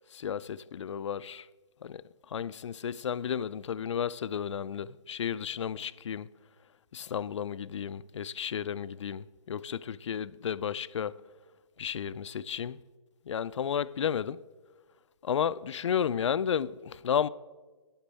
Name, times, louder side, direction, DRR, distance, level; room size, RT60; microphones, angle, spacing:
voice 1, 0.1-1.5 1.8-6.3 6.9-11.2 11.8-12.8 13.3-14.4 15.2-17.3, left 8 dB, 70° left, 0.4 m, -33 dB
11.5 x 10.0 x 3.4 m
hypercardioid pair, 160°, 16 cm